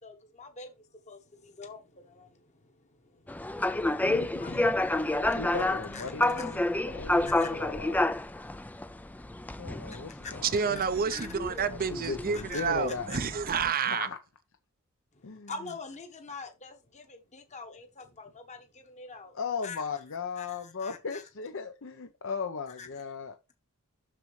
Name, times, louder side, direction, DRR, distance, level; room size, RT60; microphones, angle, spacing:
voice 1, 0.0-5.4 5.9-6.1 6.5-6.6 7.3-7.5 8.9-9.3 10.2-10.3 10.8-10.9 11.1-11.3 12.0-12.6 13.1-13.2 15.1-19.3 19.6-19.8 20.4-21.2 22.8-22.9, left 4 dB, 35° left, 1.1 m, -45 dB
sound 1, 3.3-13.7, left 2 dB, 5° left, 0.3 m, -30 dB
voice 2, 5.4-8.0 9.6-10.8 11.7-13.2 13.9-14.2 15.2-15.5 19.3-23.3, left 5 dB, 60° left, 0.7 m, -37 dB
voice 3, 10.4-14.1, right 6 dB, 40° right, 0.6 m, -29 dB
6.6 x 6.4 x 3.2 m
head